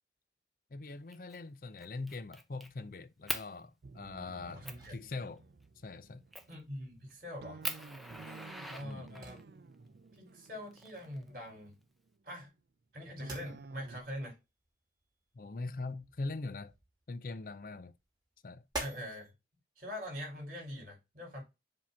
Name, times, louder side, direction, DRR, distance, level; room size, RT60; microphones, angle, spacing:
voice 1, 0.7-5.4 5.8-6.2 8.8-9.2 15.3-16.7 17.1-18.0 18.4-18.6, left 3 dB, 50° left, 0.5 m, -42 dB
Fire, 1.1-1.4 1.8-2.7 3.3-3.5 4.1-4.2 4.6-4.9 6.3-6.6 7.1-7.2 7.6-9.4 10.4-11.4, equal, ahead, 0.6 m, -41 dB
sound 1, 2.6-19.3, right 1 dB, 25° right, 2.5 m, -51 dB
sound 2, 3.8-12.1 13.2-14.0, right 3 dB, 65° right, 0.5 m, -52 dB
voice 2, 4.5-4.9 6.5-7.6 8.7-9.4 10.1-11.8 12.2-12.5 12.9-14.4 18.8-19.3 19.8-21.4, equal, 50° right, 4.7 m, -43 dB
7.4 x 2.9 x 5.7 m
head